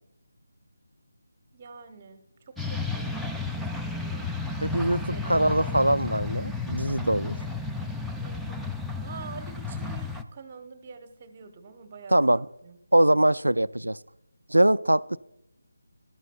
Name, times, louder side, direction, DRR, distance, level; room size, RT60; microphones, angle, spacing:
voice 1, 1.5-4.3 4.7-5.4 8.2-8.6 9.0-12.8, right 5 dB, 30° right, 9 dB, 0.9 m, -46 dB
sound 1, 2.6-10.2, left 3 dB, ahead, 0.4 m, -32 dB
voice 2, 4.6-7.4 12.1-12.5 12.9-14.0 14.5-15.2, right 1 dB, 85° right, 16 dB, 0.3 m, -22 dB
15.0 x 12.0 x 2.2 m, 0.84 s
figure-of-eight pair, 155°, 0 cm